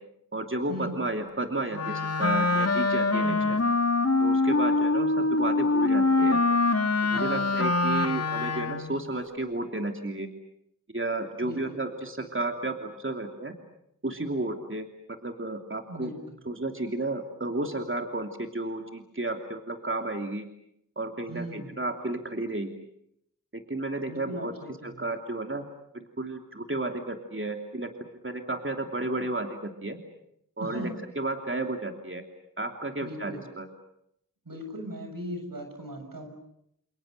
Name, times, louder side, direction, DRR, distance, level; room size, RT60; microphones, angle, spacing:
voice 1, 0.3-3.6 4.2-6.4 7.0-10.3 10.9-13.5 14.0-14.9 15.2-16.1 16.5-20.5 21.0-22.7 23.5-24.5 24.8-25.6 25.9-30.0 30.6-30.9 31.2-32.2 32.6-33.7, right 2 dB, 40° right, 4 dB, 2.9 m, -32 dB
Wind instrument woodwind instrument, 1.7-9.0, left 3 dB, 50° left, 2.1 m, -24 dB
voice 2, 3.2-3.5 7.1-7.6 11.4-11.8 15.9-16.4 21.3-21.8 24.1-25.1 30.6-31.0 33.0-33.4 34.5-36.3, equal, 80° right, 5 dB, 7.2 m, -38 dB
29.5 x 28.5 x 6.7 m, 0.75 s
wide cardioid pair, 45°, 33 cm